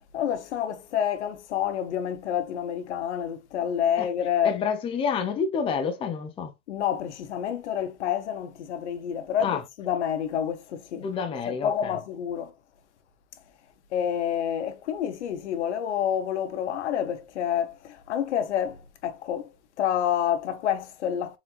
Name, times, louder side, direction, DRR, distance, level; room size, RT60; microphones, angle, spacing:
voice 1, 0.1-4.5 6.7-11.1 11.5-12.5 13.9-19.5 19.8-21.4, left 9 dB, 85° left, 1.0 m, -28 dB
voice 2, 4.4-6.5 9.4-9.6 11.0-12.0, left 6 dB, 15° left, 0.6 m, -28 dB
4.4 x 3.8 x 2.3 m
supercardioid pair, 140°, 34 cm